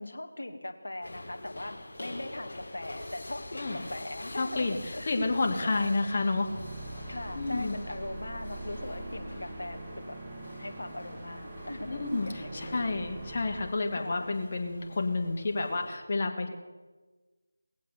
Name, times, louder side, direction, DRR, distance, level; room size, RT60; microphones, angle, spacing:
voice 1, 0.0-6.0 7.1-10.2 10.6-12.9 13.9-14.4, left 1 dB, 75° left, 6 dB, 1.7 m, -40 dB
sound 1, 1.0-16.0, left 1 dB, 60° left, 3.2 m, -46 dB
voice 2, 4.4-4.8 5.1-6.5 7.3-7.8 11.9-16.5, left 3 dB, 40° left, 3 dB, 1.7 m, -30 dB
sound 2, 6.4-13.7, right 2 dB, 15° right, 1.4 m, -43 dB
19.5 x 7.5 x 7.0 m, 1.3 s
figure-of-eight pair, 165°, 0 cm